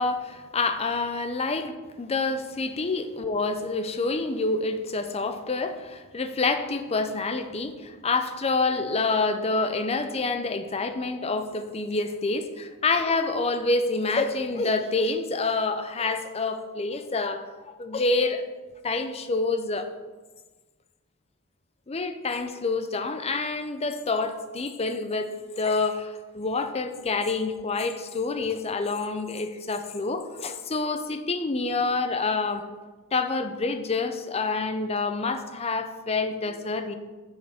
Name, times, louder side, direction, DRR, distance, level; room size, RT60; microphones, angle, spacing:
voice 1, 0.0-17.4 17.8-18.4 18.8-19.9 21.9-32.6 33.1-37.0, left 3 dB, 30° left, 9 dB, 0.5 m, -27 dB
9.9 x 6.4 x 3.5 m, 1.3 s
head